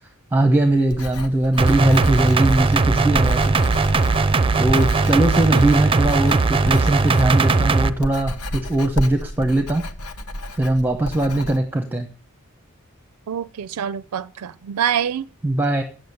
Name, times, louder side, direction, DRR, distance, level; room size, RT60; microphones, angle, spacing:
voice 1, 0.3-3.5 4.6-9.9 10.6-12.1 15.4-15.8, right 1 dB, 10° right, 1.0 m, -20 dB
Writing, 0.8-11.6, left 1 dB, 90° left, 1.1 m, -32 dB
sound 1, 1.6-7.9, right 3 dB, 25° right, 0.6 m, -19 dB
voice 2, 13.3-15.3, right 9 dB, 85° right, 0.4 m, -26 dB
9.1 x 7.7 x 6.7 m
head